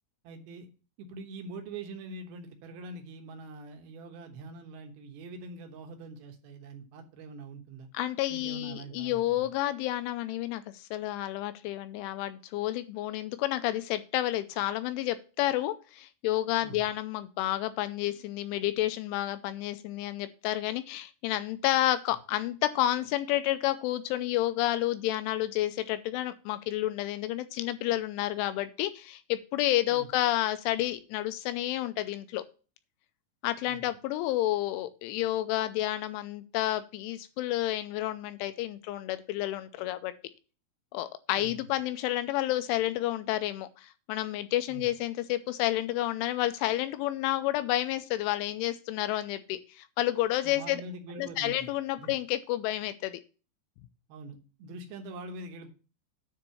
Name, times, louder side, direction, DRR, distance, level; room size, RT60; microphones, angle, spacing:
voice 1, 0.2-0.7 1.0-7.9 8.3-9.5 16.6-16.8 29.9-30.1 33.7-33.8 41.3-41.6 44.7-44.9 50.4-51.7 52.0-52.1 54.1-55.7, right 3 dB, 70° right, 4 dB, 2.5 m, -44 dB
voice 2, 7.9-32.4 33.4-40.1 40.9-50.8 51.2-53.2, left 14 dB, 85° left, 11 dB, 2.9 m, -30 dB
9.7 x 3.6 x 6.8 m, 0.35 s
omnidirectional pair, 5.6 m